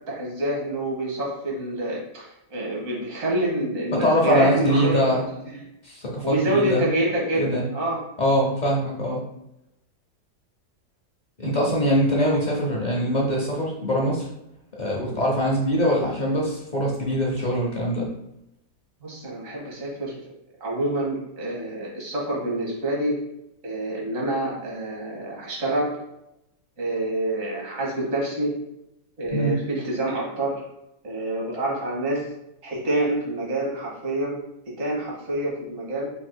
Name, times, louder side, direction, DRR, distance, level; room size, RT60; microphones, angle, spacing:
voice 1, 0.1-5.6 6.2-8.0 19.0-20.2 20.6-23.2 23.6-25.9 26.8-28.6 29.2-30.6 31.0-32.3 32.6-34.4 34.7-36.1, right 1 dB, 50° right, -3 dB, 1.7 m, -27 dB
voice 2, 3.9-5.2 5.8-6.8 7.4-7.6 8.2-9.2 11.4-14.2 14.8-18.1 29.3-29.6, equal, 50° left, -2 dB, 0.5 m, -23 dB
4.5 x 4.1 x 2.2 m, 0.85 s
omnidirectional pair, 1.9 m